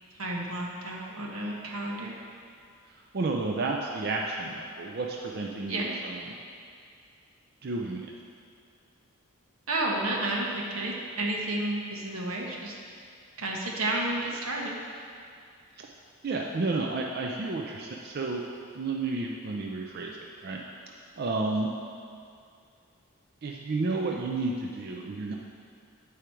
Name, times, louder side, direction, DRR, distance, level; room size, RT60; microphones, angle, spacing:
voice 1, 0.1-2.2 5.7-6.0 9.7-12.8 13.4-14.8, right 2 dB, 85° right, -1 dB, 1.1 m, -31 dB
voice 2, 2.8-6.3 7.6-8.1 15.8-15.9 16.2-18.4 18.7-20.6 20.9-21.7 23.4-25.3, right 3 dB, 45° right, 0 dB, 0.4 m, -31 dB
8.3 x 4.9 x 4.5 m, 2.3 s
head